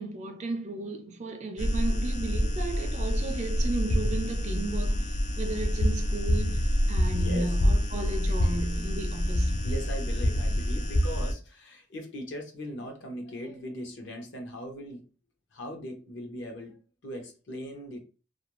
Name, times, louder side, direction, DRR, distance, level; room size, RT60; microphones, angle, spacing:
voice 1, 0.0-9.6, right 2 dB, 35° right, 0.4 m, -35 dB
sound 1, 1.6-11.3, equal, 40° left, 0.3 m, -27 dB
voice 2, 7.1-7.6 8.4-8.6 9.6-15.1 15.5-18.0, equal, 60° left, 0.7 m, -39 dB
2.4 x 2.2 x 2.9 m
head